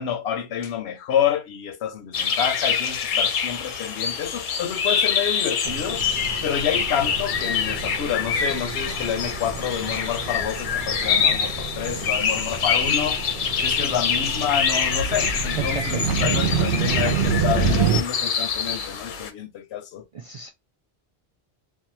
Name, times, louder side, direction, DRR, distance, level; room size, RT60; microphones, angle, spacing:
voice 1, 0.0-13.3 13.6-20.0, left 9 dB, 85° left, 0.9 m, -28 dB
sound 1, 2.1-19.3, left 6 dB, 60° left, 0.6 m, -25 dB
sound 2, 5.6-18.0, right 5 dB, 80° right, 0.9 m, -28 dB
voice 2, 15.6-16.0 20.1-20.5, right 5 dB, 55° right, 0.3 m, -32 dB
2.5 x 2.3 x 2.8 m
omnidirectional pair, 1.1 m